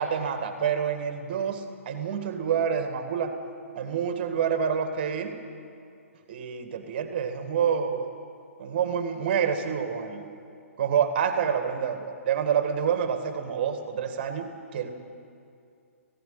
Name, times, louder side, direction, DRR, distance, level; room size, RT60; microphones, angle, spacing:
voice 1, 0.0-3.3 3.7-5.4 6.3-8.1 8.6-10.3 10.8-14.9, right 7 dB, 40° right, 7 dB, 1.9 m, -27 dB
17.5 x 16.0 x 9.4 m, 2.4 s
figure-of-eight pair, 125°, 8 cm